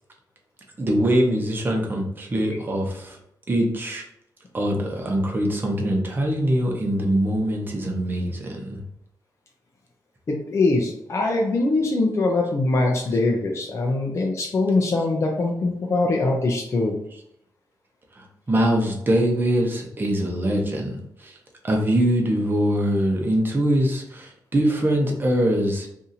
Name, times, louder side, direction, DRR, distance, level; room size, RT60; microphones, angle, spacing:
voice 1, 0.8-3.2 3.5-4.0 4.5-8.8 13.1-13.2 18.2-21.4 21.6-25.9, right 1 dB, 30° right, 0 dB, 0.8 m, -23 dB
voice 2, 10.3-17.0, left 2 dB, 40° left, 0 dB, 0.5 m, -22 dB
2.7 x 2.5 x 4.1 m, 0.75 s
cardioid pair, 105°, 7 cm